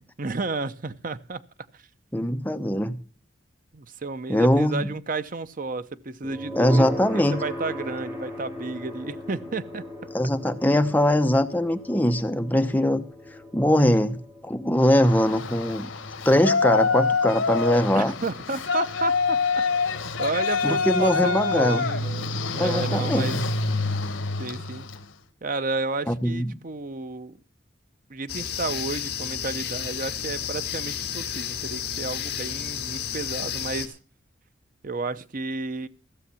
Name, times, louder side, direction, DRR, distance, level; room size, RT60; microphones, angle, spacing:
voice 1, 0.2-1.4 1.7-1.8 3.7-9.8 17.9-19.4 19.7-19.9 20.2-23.4 24.4-24.9 25.4-27.4 28.1-34.0 34.8-35.9, right 3 dB, 45° right, 0.7 m, -32 dB
voice 2, 2.1-3.0 4.3-4.9 6.6-7.4 10.1-13.0 13.5-15.9 16.2-18.1 20.6-21.9 22.6-23.4 26.1-26.5, left 1 dB, 10° left, 0.9 m, -22 dB
sound 1, 6.2-21.2, equal, 10° right, 4.4 m, -39 dB
Yell, 14.8-25.0, left 4 dB, 85° left, 1.1 m, -26 dB
sound 2, 28.3-33.9, left 9 dB, 50° left, 2.4 m, -32 dB
15.5 x 7.1 x 7.0 m
head